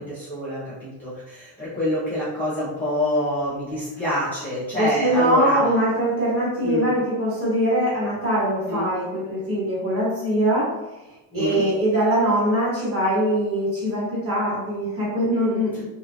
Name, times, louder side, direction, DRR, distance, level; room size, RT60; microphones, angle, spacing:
voice 1, 0.0-5.6 6.6-6.9 8.7-8.9 11.3-11.6, left 1 dB, 5° left, -11 dB, 0.6 m, -26 dB
voice 2, 4.7-10.7 11.3-15.8, right 1 dB, 30° right, -7 dB, 0.9 m, -22 dB
2.7 x 2.3 x 2.5 m, 1.0 s
cardioid pair, 170°, 50 cm